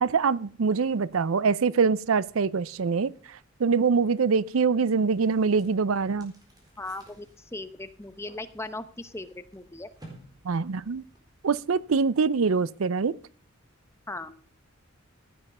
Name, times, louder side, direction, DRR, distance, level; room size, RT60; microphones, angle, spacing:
voice 1, 0.0-6.3 10.4-11.0 11.4-13.2, right 5 dB, 80° right, 0.5 m, -24 dB
sound 1, 5.1-11.7, right 1 dB, 20° right, 4.2 m, -55 dB
voice 2, 6.8-9.9 14.1-14.3, left 2 dB, 15° left, 0.8 m, -38 dB
15.5 x 9.5 x 5.5 m
head